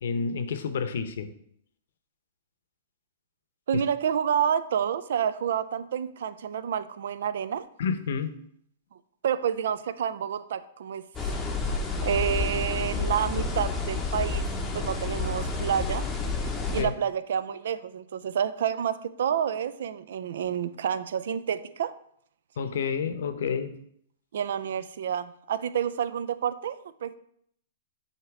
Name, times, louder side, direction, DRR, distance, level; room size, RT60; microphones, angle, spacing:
voice 1, 0.0-1.3 7.8-8.3 16.8-16.9 22.6-23.8, left 6 dB, 65° left, 10 dB, 0.8 m, -29 dB
voice 2, 3.7-7.7 9.2-11.0 12.0-14.4 14.7-16.1 16.7-22.0 24.3-27.2, right 8 dB, 70° right, 14 dB, 0.4 m, -29 dB
sound 1, 11.2-16.8, left 3 dB, 10° left, 0.8 m, -30 dB
8.1 x 2.9 x 5.9 m, 0.68 s
hypercardioid pair, 160°, 0 cm